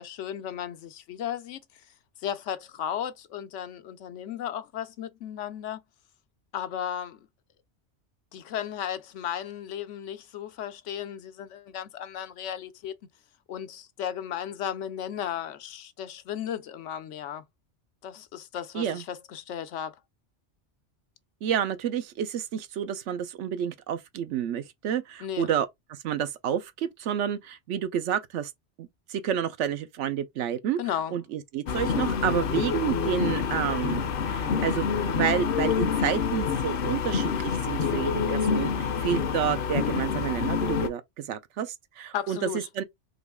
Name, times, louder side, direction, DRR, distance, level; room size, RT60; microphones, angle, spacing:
voice 1, 0.0-1.8 2.2-5.8 6.5-7.3 8.3-12.9 13.5-17.4 18.0-20.0 25.2-25.5 30.8-31.1 42.1-42.7, left 9 dB, 90° left, 1.0 m, -35 dB
voice 2, 21.4-28.5 28.8-30.8 31.1-42.8, right 9 dB, 85° right, 1.0 m, -30 dB
sound 1, 31.7-40.9, left 6 dB, 60° left, 0.7 m, -27 dB
3.8 x 3.0 x 3.5 m
omnidirectional pair, 1.2 m